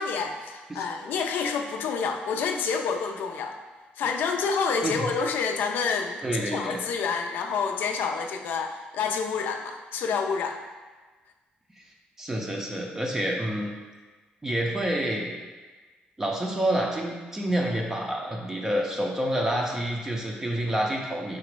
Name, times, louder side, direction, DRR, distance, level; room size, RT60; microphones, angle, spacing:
voice 1, 0.0-3.5 4.0-10.6, left 5 dB, 75° left, 4 dB, 0.4 m, -28 dB
voice 2, 6.2-6.8 12.2-13.7 14.4-15.3 16.2-21.4, right 1 dB, 15° right, 0 dB, 0.5 m, -28 dB
4.8 x 2.0 x 4.5 m, 1.3 s
cardioid pair, 130°, 3 cm